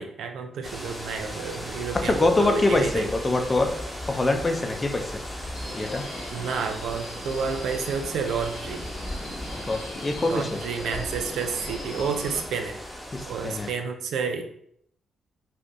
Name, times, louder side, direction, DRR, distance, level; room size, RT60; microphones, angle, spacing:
voice 1, 0.0-3.1 6.3-8.8 10.3-12.8 13.3-14.4, right 6 dB, 70° right, 5 dB, 0.3 m, -30 dB
sound 1, 0.6-13.7, equal, 10° left, 1.0 m, -37 dB
voice 2, 2.0-3.7 4.1-5.2 5.7-6.0 9.5-10.5 13.1-13.7, left 2 dB, 30° left, 4 dB, 0.6 m, -24 dB
Subway metro underground, 5.5-12.4, left 1 dB, 85° left, 1.0 m, -40 dB
2.5 x 2.5 x 3.7 m, 0.68 s
hypercardioid pair, 40°, 0 cm